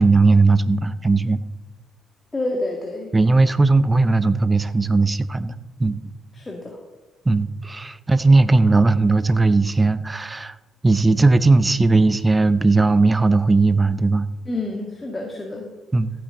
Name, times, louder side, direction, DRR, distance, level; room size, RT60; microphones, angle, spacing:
voice 1, 0.0-1.4 3.1-5.5 5.8-6.0 7.3-10.5 10.8-14.3 15.9-16.1, right 3 dB, 25° right, 15 dB, 0.7 m, -17 dB
voice 2, 2.3-3.1 6.3-6.8 14.5-15.7, left 2 dB, 25° left, 1 dB, 1.9 m, -28 dB
14.5 x 8.2 x 3.9 m, 1.1 s
hypercardioid pair, 45°, 0 cm